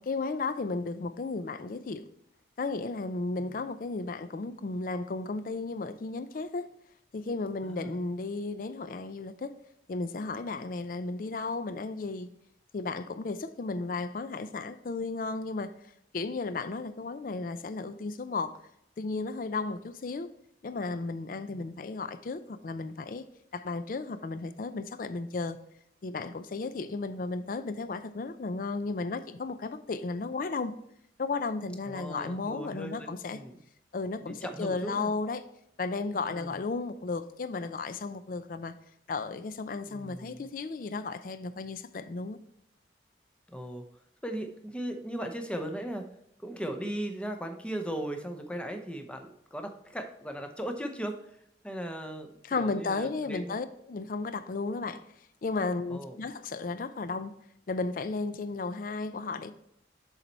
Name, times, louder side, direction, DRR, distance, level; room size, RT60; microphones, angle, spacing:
voice 1, 0.0-2.1 2.6-6.7 7.1-9.6 9.9-12.3 12.7-15.7 16.1-18.6 19.0-20.3 20.6-23.2 23.5-25.6 26.0-30.7 31.2-33.4 33.9-35.4 35.8-38.7 39.1-42.4 52.4-55.0 55.4-57.3 57.7-59.5, left 3 dB, 50° left, 0.4 m, -34 dB
voice 2, 7.6-8.0 21.5-21.7 31.9-33.5 34.2-35.1 36.3-36.6 39.9-40.5 43.5-43.8 44.2-46.1 46.4-51.2 51.6-53.6 55.9-56.2, right 1 dB, 5° left, 0.6 m, -38 dB
7.2 x 4.0 x 4.4 m
head